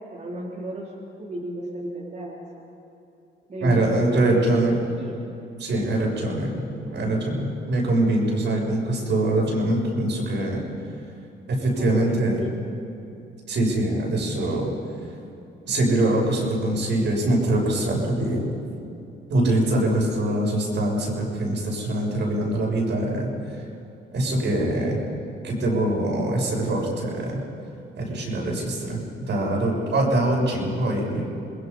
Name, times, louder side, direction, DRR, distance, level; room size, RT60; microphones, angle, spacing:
voice 1, 0.1-2.6 3.5-5.3 6.5-7.2 11.8-12.9 24.4-25.0, right 1 dB, 35° right, -5 dB, 3.7 m, -35 dB
voice 2, 3.6-4.9 5.6-10.7 11.5-12.4 13.5-14.7 15.6-18.5 19.3-23.3 24.1-25.0 25.4-27.4 28.0-31.2, right 1 dB, 65° right, -2 dB, 6.5 m, -23 dB
27.5 x 20.5 x 5.5 m, 2.7 s
cardioid pair, 90°, 20 cm